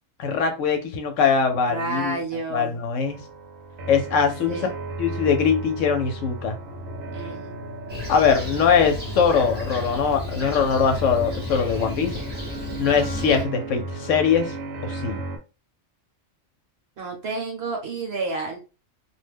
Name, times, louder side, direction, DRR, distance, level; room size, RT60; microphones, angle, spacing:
voice 1, 0.2-2.2 2.5-3.2 3.9-4.7 5.0-6.6 8.1-12.2 12.8-14.5 14.8-15.2, left 6 dB, 70° left, 6 dB, 0.9 m, -22 dB
voice 2, 1.7-2.8 4.5-4.7 7.1-7.5 17.0-18.6, right 3 dB, 55° right, 1 dB, 0.9 m, -30 dB
sound 1, 3.1-15.4, right 2 dB, 80° right, 1.1 m, -35 dB
Fixed-wing aircraft airplane, 7.9-13.4, left 2 dB, 10° right, 0.6 m, -33 dB
2.4 x 2.1 x 3.3 m, 0.32 s
omnidirectional pair, 1.4 m